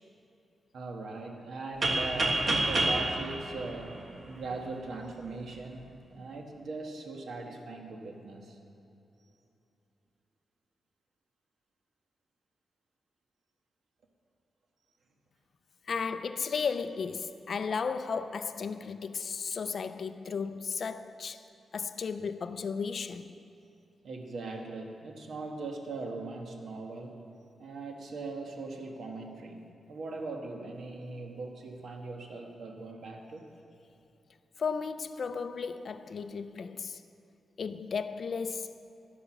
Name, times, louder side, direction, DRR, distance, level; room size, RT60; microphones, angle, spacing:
voice 1, 0.7-8.6 9.2-9.3 24.0-27.3 27.6-33.5, right 3 dB, 70° right, 1.4 m, -40 dB
sound 1, 1.8-4.6, right 2 dB, 40° right, 1.4 m, -29 dB
voice 2, 15.8-21.4 21.7-23.4 34.6-37.0 37.6-38.7, left 5 dB, 50° left, 0.4 m, -34 dB
11.5 x 10.0 x 6.2 m
wide cardioid pair, 150°, 0 cm